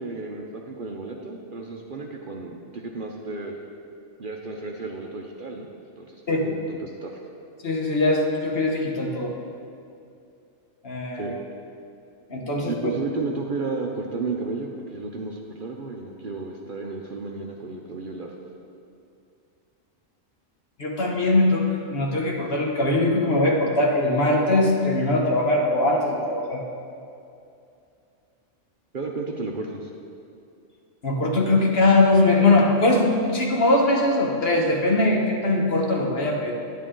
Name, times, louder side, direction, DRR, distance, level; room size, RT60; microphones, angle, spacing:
voice 1, 0.0-3.6 4.2-7.3 11.1-11.4 12.7-18.3 28.9-29.9, right 3 dB, 50° right, 1 dB, 0.8 m, -33 dB
voice 2, 7.6-9.3 10.8-11.4 12.3-12.8 20.8-26.6 31.0-36.5, left 2 dB, 50° left, 0 dB, 1.4 m, -21 dB
10.0 x 10.0 x 3.8 m, 2.5 s
omnidirectional pair, 1.3 m